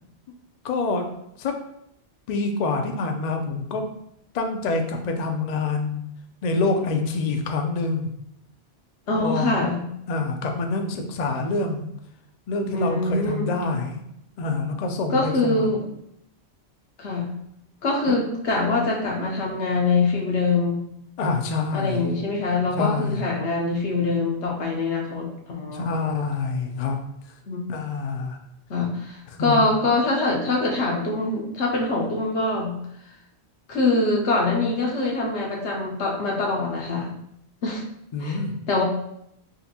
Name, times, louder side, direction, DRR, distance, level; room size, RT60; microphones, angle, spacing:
voice 1, 0.6-1.1 1.4-1.6 2.3-3.8 4.3-6.0 6.4-8.1 9.2-9.8 10.1-11.9 12.5-14.0 14.4-15.7 21.2-22.2 22.8-23.3 25.7-27.0 27.7-28.4 29.4-29.7 38.1-38.5, left 3 dB, 60° left, 4 dB, 0.4 m, -26 dB
voice 2, 9.1-9.8 12.7-13.6 15.1-15.8 17.0-17.3 17.8-20.8 21.7-25.9 27.5-27.7 28.7-32.7 33.7-37.1 37.6-37.8 38.2-38.4 38.7-38.8, left 3 dB, 80° left, -1 dB, 1.1 m, -24 dB
3.8 x 2.5 x 2.7 m, 0.76 s
omnidirectional pair, 1.2 m